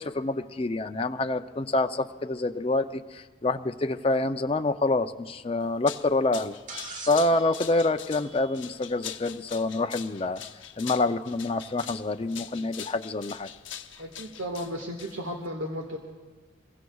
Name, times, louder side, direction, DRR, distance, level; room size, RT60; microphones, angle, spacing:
voice 1, 0.0-6.6 7.1-10.4 10.8-13.5, left 2 dB, 30° left, 8 dB, 0.5 m, -27 dB
sound 1, 5.6-15.5, left 9 dB, 70° left, 0.8 m, -43 dB
sound 2, 6.7-9.0 10.6-10.7 11.8-11.9, right 3 dB, 40° right, 1.3 m, -44 dB
voice 2, 14.0-16.0, equal, 85° right, 1 dB, 1.6 m, -34 dB
27.5 x 22.5 x 2.3 m, 1.4 s
head